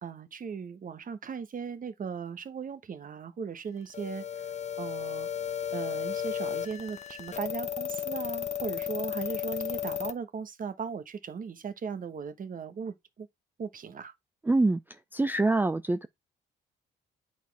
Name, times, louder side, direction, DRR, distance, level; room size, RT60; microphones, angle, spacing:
voice 1, 0.0-5.3 5.7-13.3 13.6-14.1, right 6 dB, 45° right, 1.1 m, -38 dB
sound 1, 3.9-10.1, left 9 dB, 35° left, 0.9 m, -34 dB
voice 2, 14.5-14.8 15.1-16.1, right 2 dB, 10° right, 0.4 m, -25 dB
8.1 x 4.2 x 4.6 m
cardioid pair, 90°, 20 cm